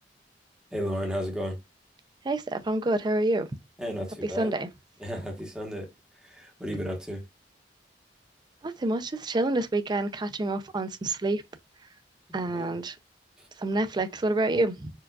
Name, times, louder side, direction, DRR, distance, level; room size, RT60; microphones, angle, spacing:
voice 1, 0.7-1.6 3.8-4.5 5.0-5.9 6.2-7.2 12.3-12.8, equal, 5° right, 1.0 m, -33 dB
voice 2, 2.2-3.5 4.2-4.7 8.6-11.4 12.3-13.0 13.6-14.9, right 2 dB, 25° right, 0.4 m, -27 dB
4.5 x 2.3 x 2.3 m
head